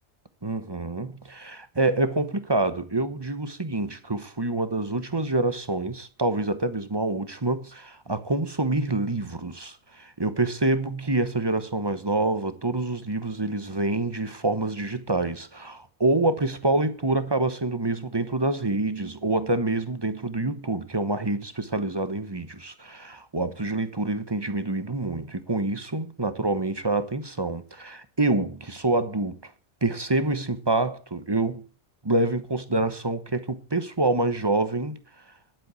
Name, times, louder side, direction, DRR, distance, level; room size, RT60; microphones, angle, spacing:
voice 1, 0.4-29.5 29.8-31.6 32.0-35.0, right 2 dB, 20° right, 1.1 m, -26 dB
11.0 x 9.1 x 7.0 m
omnidirectional pair, 1.4 m